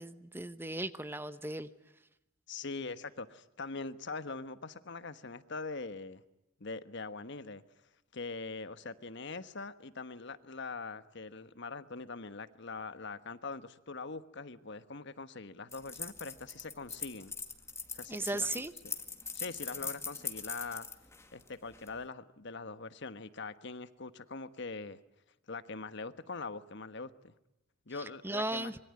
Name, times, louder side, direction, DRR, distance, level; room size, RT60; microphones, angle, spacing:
voice 1, 0.0-1.7 18.1-18.7 28.2-28.8, right 2 dB, 10° right, 12 dB, 0.9 m, -36 dB
voice 2, 2.5-6.2 6.6-7.6 8.1-17.3 17.9-18.6 19.3-20.9 21.3-25.0 25.5-27.3 27.9-28.7, left 4 dB, 60° left, 11 dB, 1.3 m, -42 dB
sound 1, 15.7-22.0, left 4 dB, 15° left, 2.0 m, -42 dB
25.5 x 22.5 x 9.7 m, 0.89 s
head